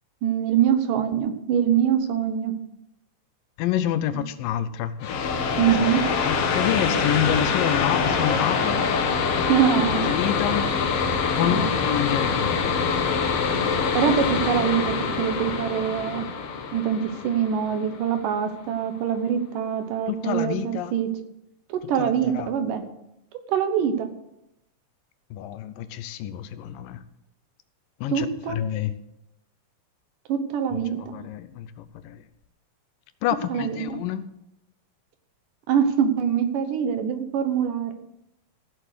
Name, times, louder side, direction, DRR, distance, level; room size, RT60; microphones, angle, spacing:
voice 1, 0.2-2.5 4.1-4.2 5.6-6.0 9.5-10.1 11.4-11.7 13.9-16.3 16.7-21.1 21.7-22.8 23.5-24.1 28.1-28.6 30.3-31.2 33.5-34.0 35.7-37.9, right 8 dB, 75° right, 8 dB, 2.6 m, -24 dB
voice 2, 3.6-5.1 5.8-8.8 10.0-10.7 11.4-12.5 20.1-21.0 22.0-22.5 25.3-27.0 28.0-28.9 30.7-32.2 33.2-34.3, left 11 dB, 80° left, 12 dB, 2.4 m, -28 dB
sound 1, 5.0-18.4, left 5 dB, 60° left, 1.7 m, -25 dB
15.5 x 7.6 x 6.5 m, 0.83 s
omnidirectional pair, 4.0 m